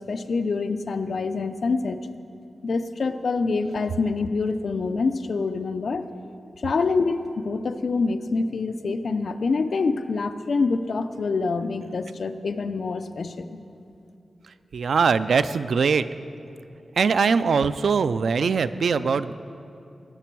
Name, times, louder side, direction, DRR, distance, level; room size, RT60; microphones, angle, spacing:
voice 1, 0.0-2.0 2.6-6.1 6.6-13.5, left 4 dB, 60° left, 9 dB, 0.5 m, -26 dB
voice 2, 14.7-16.0 17.0-19.3, right 5 dB, 80° right, 14 dB, 0.3 m, -21 dB
19.0 x 6.8 x 4.6 m, 2.6 s
wide cardioid pair, 170°, 0 cm